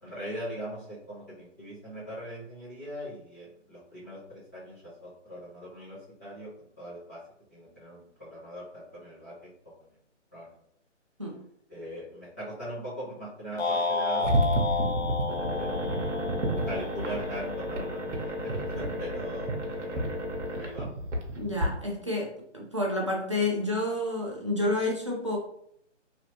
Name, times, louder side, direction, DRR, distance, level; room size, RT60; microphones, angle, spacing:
voice 1, 0.0-7.2 7.5-9.5 9.8-9.9 10.3-10.5 11.7-14.3 14.7-15.0 15.5-15.7 16.6-20.1 20.6-20.9, equal, 15° left, -14 dB, 1.0 m, -40 dB
sound 1, 13.6-17.9, left 4 dB, 60° left, 0.6 m, -31 dB
sound 2, 14.2-21.7, right 1 dB, 75° right, 1.0 m, -30 dB
voice 2, 21.4-25.4, left 1 dB, 25° right, -3 dB, 0.4 m, -29 dB
3.0 x 2.9 x 2.9 m, 0.70 s
hypercardioid pair, 165°, 37 cm